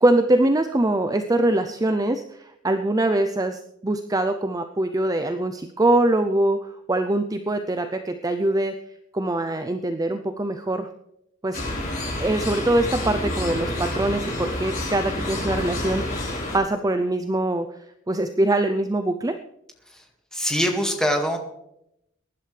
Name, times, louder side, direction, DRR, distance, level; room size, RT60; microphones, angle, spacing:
voice 1, 0.0-8.7 9.1-10.9 11.4-11.6 12.2-16.0 16.5-17.8 18.1-19.3, right 1 dB, 20° right, 7 dB, 0.6 m, -23 dB
sound 1, 11.5-16.6, left 1 dB, 45° left, 6.0 m, -28 dB
voice 2, 20.3-21.4, equal, 5° left, 2 dB, 2.0 m, -23 dB
22.5 x 11.0 x 3.4 m, 0.80 s
head